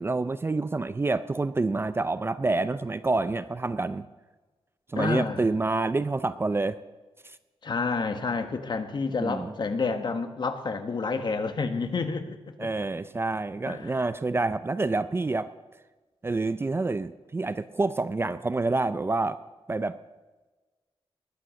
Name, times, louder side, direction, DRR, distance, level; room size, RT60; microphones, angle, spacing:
voice 1, 0.0-4.1 4.9-6.8 9.2-9.5 12.6-15.5 16.2-19.4 19.7-20.0, right 3 dB, 25° right, 13 dB, 0.5 m, -27 dB
voice 2, 4.9-5.5 7.6-12.7 13.7-14.0, left 4 dB, 45° left, 8 dB, 1.4 m, -29 dB
20.0 x 11.0 x 6.4 m, 1.2 s
wide cardioid pair, 155°, 10 cm